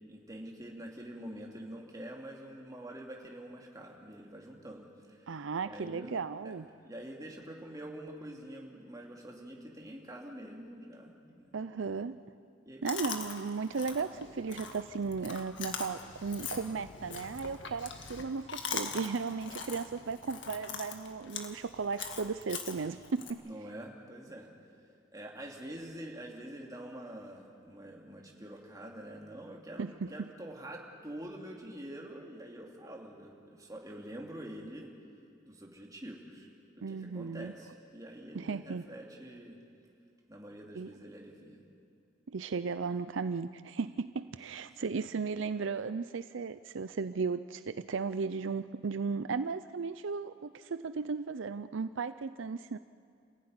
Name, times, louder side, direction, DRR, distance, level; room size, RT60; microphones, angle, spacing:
voice 1, 0.1-5.3 5.6-6.2 6.4-11.6 11.8-11.9 12.6-13.0 19.7-19.9 23.4-24.5 25.1-34.9 35.5-36.5 36.7-39.6 40.3-41.6 44.8-44.9, right 1 dB, 20° right, -1 dB, 2.8 m, -46 dB
voice 2, 5.3-6.7 11.5-12.2 12.8-23.4 29.8-30.3 36.8-37.5 38.3-38.9 40.8-40.9 42.3-52.8, right 5 dB, 70° right, 12 dB, 0.5 m, -35 dB
Chewing mastication, 12.9-23.3, left 5 dB, 65° left, 1.9 m, -42 dB
27.5 x 15.5 x 9.7 m, 2.3 s
head